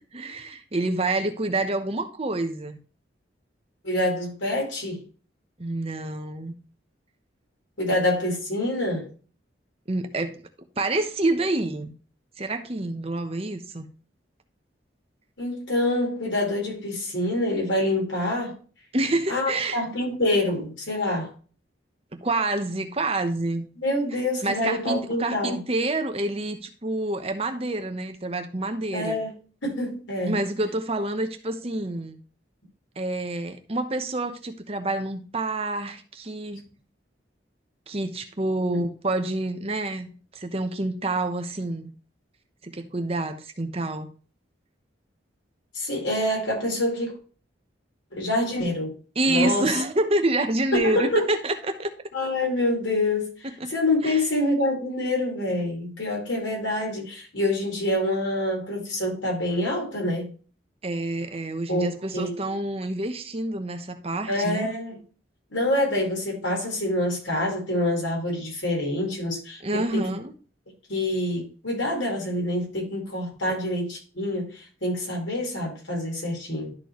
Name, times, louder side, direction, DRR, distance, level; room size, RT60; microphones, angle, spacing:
voice 1, 0.1-2.8 5.6-6.5 9.9-10.4 10.8-11.9 12.4-13.9 18.9-19.8 22.1-23.7 24.4-29.2 30.3-32.2 33.0-36.7 37.9-41.9 42.6-44.1 49.2-51.9 53.6-53.7 54.0-54.2 60.8-64.7 69.6-70.3, right 2 dB, 30° right, 1.0 m, -27 dB
voice 2, 3.8-5.0 7.8-9.1 15.4-18.6 19.3-21.3 23.8-25.6 28.9-29.3 29.6-30.4 38.7-38.8 45.7-47.2 48.1-48.9 49.3-49.8 50.7-51.3 52.1-60.3 61.7-62.3 64.3-65.0 65.5-70.2 70.9-76.7, left 1 dB, 85° left, 4.2 m, -26 dB
12.0 x 4.6 x 3.0 m
head